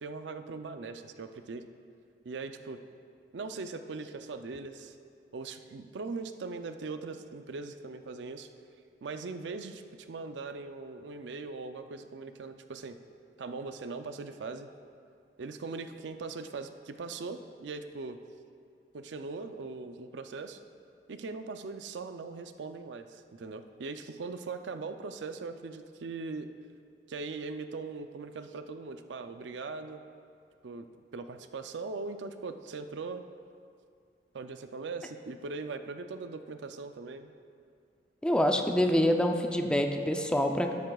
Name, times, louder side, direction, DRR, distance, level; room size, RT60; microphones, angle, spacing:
voice 1, 0.0-1.6 2.2-2.8 3.3-5.0 5.3-8.5 9.0-13.0 13.4-14.7 15.4-18.2 18.9-20.6 21.1-26.5 27.1-30.0 30.6-30.9 31.1-33.2 34.3-37.3, right 4 dB, 90° right, 8 dB, 0.5 m, -40 dB
voice 2, 38.2-40.7, left 1 dB, 5° left, 4 dB, 0.5 m, -26 dB
12.5 x 10.5 x 2.3 m, 2.3 s
head